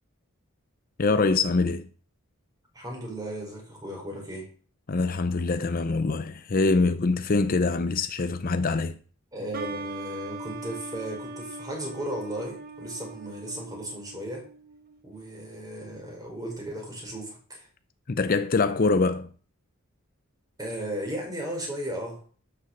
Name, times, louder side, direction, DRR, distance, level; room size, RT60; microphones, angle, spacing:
voice 1, 1.0-1.9 4.9-9.0 18.1-19.3, left 3 dB, 40° left, 0.6 m, -24 dB
voice 2, 2.7-4.5 9.3-14.5 15.0-17.7 20.6-22.2, right 1 dB, 15° right, 4.7 m, -35 dB
sound 1, 9.5-15.0, right 2 dB, 40° right, 1.3 m, -40 dB
12.5 x 6.8 x 6.5 m
head